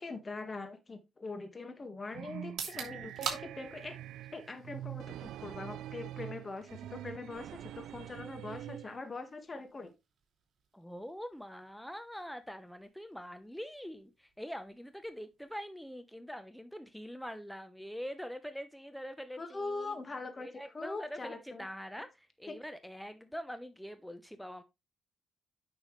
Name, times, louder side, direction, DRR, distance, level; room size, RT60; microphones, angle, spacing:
voice 1, 0.0-4.0 4.3-9.9 19.4-21.7 22.5-22.6, left 3 dB, 30° left, 1.7 m, -42 dB
sound 1, 2.1-9.0, right 12 dB, 80° right, 0.3 m, -45 dB
sound 2, 2.4-16.3, right 7 dB, 60° right, 2.8 m, -49 dB
voice 2, 10.7-20.0 20.4-24.6, equal, 5° left, 0.9 m, -44 dB
8.9 x 6.1 x 3.2 m
cardioid pair, 90°, 0 cm